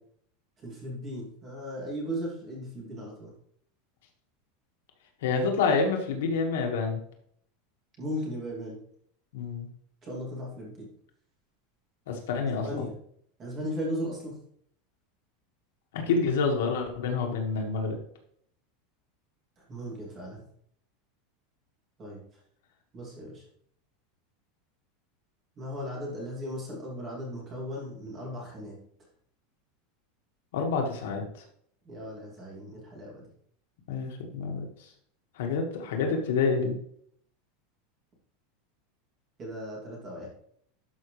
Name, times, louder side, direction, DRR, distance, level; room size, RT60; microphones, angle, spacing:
voice 1, 0.6-3.3 8.0-8.8 10.0-10.9 12.6-13.0 13.4-14.4 19.6-20.4 22.0-22.2 22.9-23.4 25.6-28.8 31.8-33.3 39.4-40.3, equal, 20° right, -2 dB, 2.8 m, -37 dB
voice 2, 5.2-7.0 9.3-9.7 12.1-12.8 15.9-18.0 30.5-31.2 33.9-34.6 35.4-36.8, left 4 dB, 75° left, 2 dB, 1.8 m, -28 dB
12.5 x 5.2 x 3.3 m, 0.65 s
supercardioid pair, 175°, 0 cm